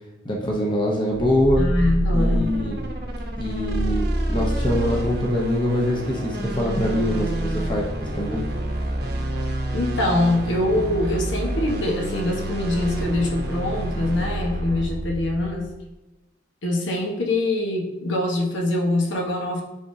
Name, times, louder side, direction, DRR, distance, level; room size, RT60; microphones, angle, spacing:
voice 1, 0.2-1.6 2.1-2.9 3.4-8.4, equal, 25° left, -2 dB, 0.8 m, -24 dB
sound 1, 1.1-15.7, right 1 dB, 50° right, 1.0 m, -27 dB
voice 2, 1.6-2.6 9.7-15.7 16.6-19.6, left 1 dB, 70° left, 0 dB, 1.2 m, -24 dB
9.9 x 3.7 x 2.7 m, 1.0 s
head